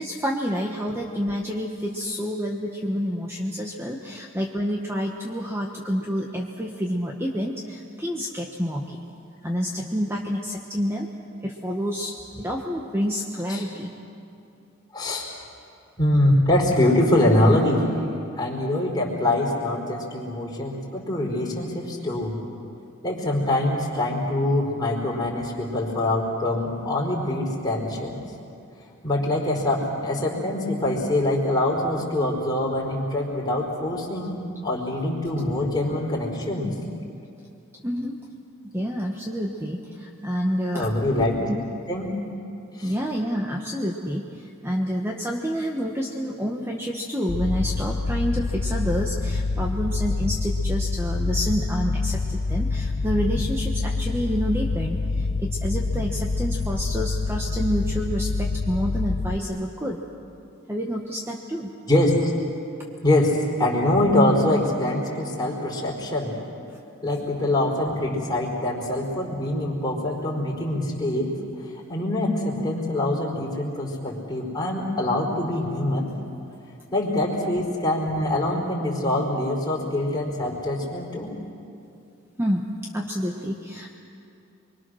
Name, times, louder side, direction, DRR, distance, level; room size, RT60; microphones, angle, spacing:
voice 1, 0.0-9.0 9.4-11.1 11.4-13.9 37.7-38.2 38.7-40.9 41.5-41.6 42.8-60.0 60.7-61.7 82.4-83.9, equal, 10° right, 0 dB, 1.2 m, -28 dB
voice 2, 14.9-15.3 16.0-17.9 18.4-22.4 23.0-28.2 29.0-36.7 40.7-41.5 41.9-42.1 42.7-42.9 61.9-62.3 63.0-66.3 67.0-76.1 76.9-81.3, left 1 dB, 20° left, -2 dB, 4.4 m, -24 dB
sound 1, 47.3-59.4, left 3 dB, 65° left, 0.7 m, -26 dB
29.0 x 23.0 x 6.4 m, 2.6 s
head